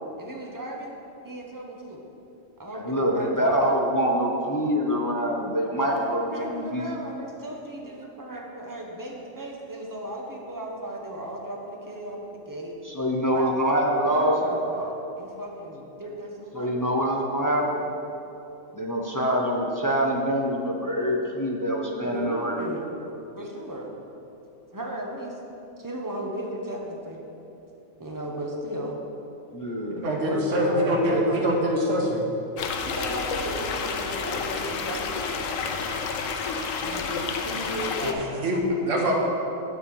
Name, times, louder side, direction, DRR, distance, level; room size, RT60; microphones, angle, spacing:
voice 1, 0.2-0.9 1.2-2.0 2.6-3.5 5.8-12.8 13.3-13.4 14.1-16.8 22.0-22.9 23.3-23.9 24.7-25.4 25.8-27.2 28.0-29.0 30.2-31.6 32.8-35.7 36.8-38.7, right 1 dB, 15° right, -1 dB, 0.8 m, -35 dB
voice 2, 2.7-6.8 12.8-14.4 16.5-17.9 18.7-22.5 29.5-30.1, equal, 30° left, -1 dB, 0.4 m, -25 dB
voice 3, 30.0-32.3 38.0-39.1, equal, 70° right, -1 dB, 1.4 m, -24 dB
sound 1, 32.6-38.1, left 5 dB, 80° left, 1.1 m, -30 dB
8.6 x 4.2 x 7.0 m, 2.9 s
omnidirectional pair, 1.4 m